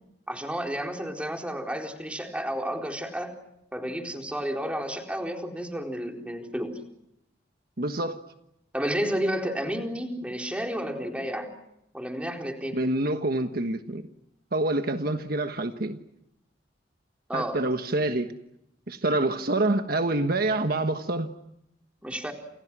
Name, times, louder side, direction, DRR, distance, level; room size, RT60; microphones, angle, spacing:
voice 1, 0.3-3.3 3.7-6.8 8.7-11.5 11.9-12.8 17.3-17.6 22.0-22.3, equal, 5° right, 4.2 m, -31 dB
voice 2, 7.8-8.2 12.7-14.1 14.5-16.0 17.3-18.3 18.9-21.3, right 2 dB, 55° right, 1.4 m, -26 dB
30.0 x 28.5 x 6.2 m
head